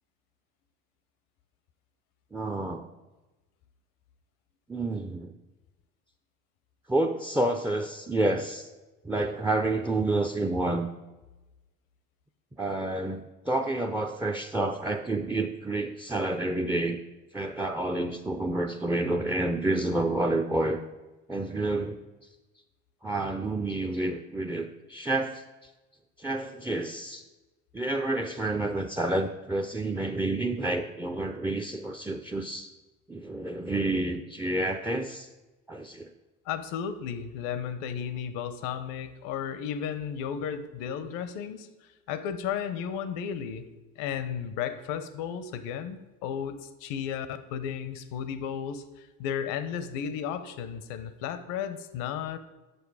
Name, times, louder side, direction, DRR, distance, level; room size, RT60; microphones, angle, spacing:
voice 1, 2.3-2.9 4.7-5.3 6.9-8.7 9.0-10.9 12.6-17.0 17.3-20.8 21.3-22.0 23.0-25.7 26.2-27.2 27.7-32.7 33.1-35.3 35.7-36.1, right 2 dB, 5° right, 3 dB, 0.5 m, -29 dB
voice 2, 36.5-41.7 42.1-43.6 44.0-52.4, left 8 dB, 75° left, 12 dB, 0.8 m, -34 dB
7.9 x 6.4 x 4.8 m, 1.1 s
supercardioid pair, 80°, 34 cm